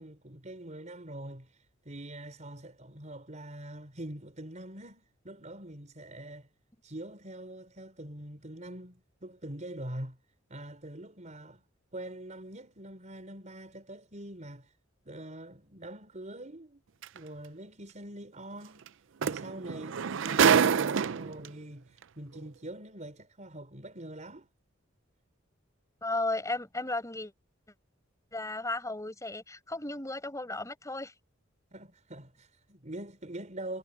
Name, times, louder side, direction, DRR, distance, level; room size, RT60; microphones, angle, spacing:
voice 1, 0.0-6.5 6.8-10.2 10.5-11.6 11.9-14.7 15.1-16.8 17.1-18.9 19.2-24.5 31.7-33.8, right 1 dB, 35° right, 5.1 m, -44 dB
sound 1, 17.0-17.2 18.9-19.0 19.2-21.5 22.4-22.5, right 7 dB, 65° right, 0.5 m, -26 dB
voice 2, 26.0-27.3 28.3-31.2, left 2 dB, 15° left, 6.0 m, -34 dB
head